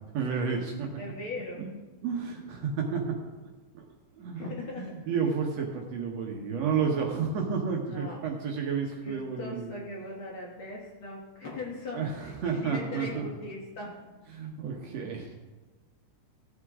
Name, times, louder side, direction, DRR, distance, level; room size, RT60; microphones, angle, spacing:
voice 1, 0.1-0.9 1.5-1.7 2.0-3.1 3.7-3.8 4.2-9.7 11.9-13.3 14.3-15.4, right 6 dB, 65° right, 0 dB, 2.0 m, -31 dB
voice 2, 1.0-1.6 4.4-5.1 7.9-8.2 9.0-13.9, left 2 dB, 55° left, -3 dB, 1.7 m, -39 dB
16.0 x 8.2 x 3.6 m, 1.3 s
omnidirectional pair, 3.7 m